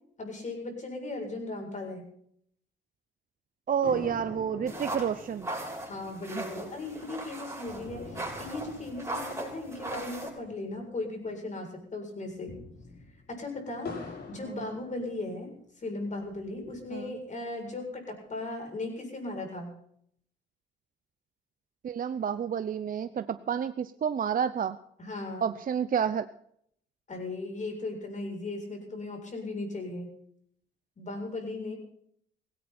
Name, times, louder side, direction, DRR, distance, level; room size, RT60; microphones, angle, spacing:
voice 1, 0.2-2.1 5.8-12.6 13.3-15.5 15.8-19.7 25.0-25.5 27.1-30.1 31.0-31.8, left 2 dB, 40° left, 3 dB, 7.6 m, -37 dB
voice 2, 3.7-5.5 6.3-6.4 14.5-14.6 16.9-17.1 21.8-24.8 25.4-26.3, right 8 dB, 45° right, 11 dB, 0.7 m, -30 dB
sound 1, 3.8-11.4 11.7-11.8 12.2-15.6 16.1-17.1, left 3 dB, 55° left, 6.0 m, -46 dB
sound 2, 4.7-10.3, right 1 dB, 15° right, 7.0 m, -39 dB
18.0 x 16.5 x 4.4 m, 0.66 s
cardioid pair, 90°, 20 cm